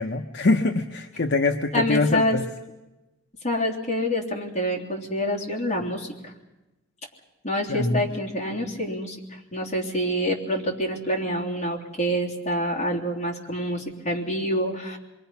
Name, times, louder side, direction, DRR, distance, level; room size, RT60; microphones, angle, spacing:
voice 1, 0.0-2.4 7.7-8.1, left 2 dB, 55° left, 5 dB, 0.8 m, -24 dB
voice 2, 1.7-2.4 3.4-6.3 7.4-9.2 9.5-15.0, equal, 35° left, -2 dB, 3.3 m, -27 dB
27.0 x 22.5 x 5.7 m, 1.0 s
head